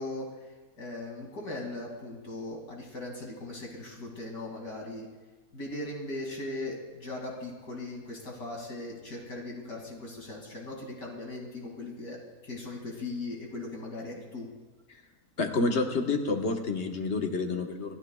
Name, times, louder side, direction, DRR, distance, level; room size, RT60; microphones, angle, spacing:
voice 1, 0.0-5.1 5.5-12.2 12.4-14.5, left 2 dB, 75° left, -1 dB, 3.0 m, -39 dB
voice 2, 15.4-18.0, left 3 dB, 50° left, 4 dB, 1.5 m, -28 dB
28.0 x 12.0 x 2.3 m, 1.3 s
omnidirectional pair, 1.6 m